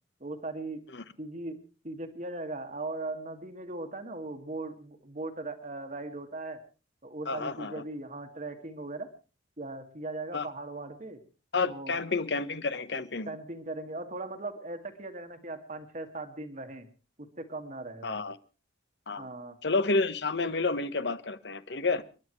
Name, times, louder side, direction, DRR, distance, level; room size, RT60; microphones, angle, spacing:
voice 1, 0.2-0.8 1.2-1.6 1.8-6.6 7.0-9.1 9.6-11.2 11.7-12.0 13.3-16.9 17.2-18.2 19.2-19.6, right 2 dB, 40° right, 7 dB, 1.8 m, -39 dB
voice 2, 7.3-7.8 10.3-10.5 11.5-13.3 18.0-18.4 19.1-19.3 19.6-22.0, left 3 dB, 65° left, 13 dB, 1.1 m, -30 dB
30.0 x 11.0 x 3.1 m, 0.34 s
head